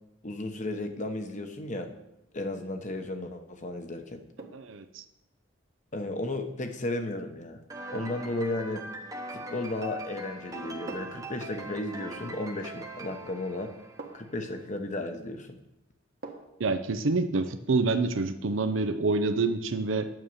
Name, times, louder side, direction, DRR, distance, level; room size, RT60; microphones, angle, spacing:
voice 1, 0.2-1.9 2.3-4.2 5.9-7.6 7.9-8.8 9.3-13.7 14.1-15.6, left 2 dB, 40° left, 6 dB, 1.1 m, -34 dB
sound 1, 2.8-3.1 4.4-4.8 6.9-7.1 7.9-8.4 9.7-10.1 10.9-11.3 13.0-13.1 14.0-14.4 16.2-16.7 17.0-17.1, right 3 dB, 50° right, 1.2 m, -46 dB
voice 2, 4.5-5.0 16.6-20.1, right 3 dB, 75° right, 9 dB, 0.6 m, -27 dB
sound 2, 7.7-14.3, right 2 dB, 20° right, 0.9 m, -41 dB
9.2 x 6.5 x 7.2 m, 0.90 s
head